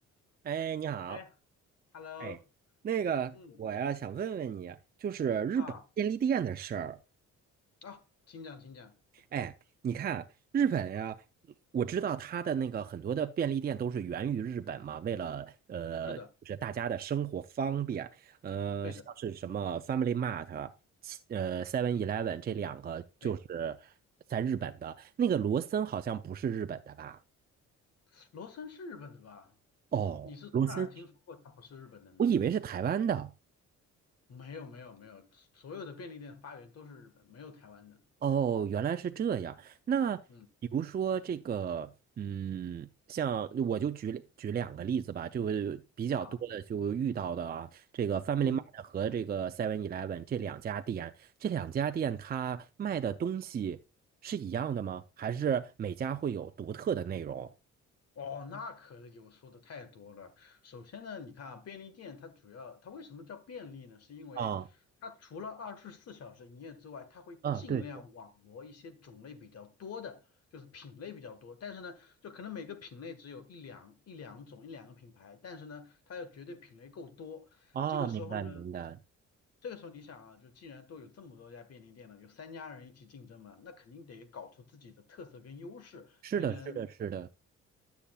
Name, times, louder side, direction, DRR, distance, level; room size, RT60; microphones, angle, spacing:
voice 1, 0.4-1.2 2.2-2.4 2.8-5.7 6.0-7.0 9.3-9.5 9.8-10.3 10.5-11.2 11.7-16.2 16.5-20.7 21.0-23.9 24.3-27.2 29.9-30.9 32.2-33.3 38.2-40.2 40.7-41.9 42.2-53.8 54.2-57.5 64.4-64.6 67.4-67.8 77.8-79.0 86.2-87.3, right 8 dB, 30° right, 0.4 m, -33 dB
voice 2, 1.9-2.4 3.3-3.6 5.5-5.8 7.8-9.0 16.0-16.3 18.8-19.0 23.2-23.3 28.1-29.5 30.2-32.2 34.3-38.0 40.3-40.5 46.2-46.4 48.4-48.6 58.1-64.5 65.0-70.2 70.5-78.6 79.6-86.8, left 5 dB, 55° left, 1.5 m, -46 dB
11.5 x 7.0 x 2.3 m
cardioid pair, 90°, 30 cm